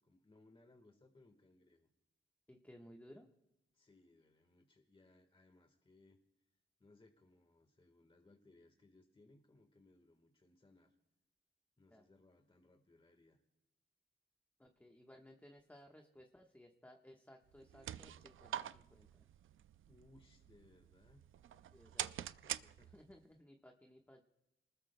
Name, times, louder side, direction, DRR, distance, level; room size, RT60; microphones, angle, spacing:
voice 1, 0.0-1.9 3.7-6.2 6.5-10.9 11.8-13.4 19.8-21.2 22.3-23.4, left 2 dB, 25° left, 3 dB, 1.5 m, -67 dB
voice 2, 2.5-3.3 11.9-12.0 14.6-19.2 21.7-22.1 22.9-24.2, equal, 10° left, 1 dB, 1.3 m, -60 dB
sound 1, 17.5-23.2, right 10 dB, 85° right, 0.4 m, -47 dB
28.0 x 20.0 x 2.2 m, 0.91 s
cardioid pair, 85°, 20 cm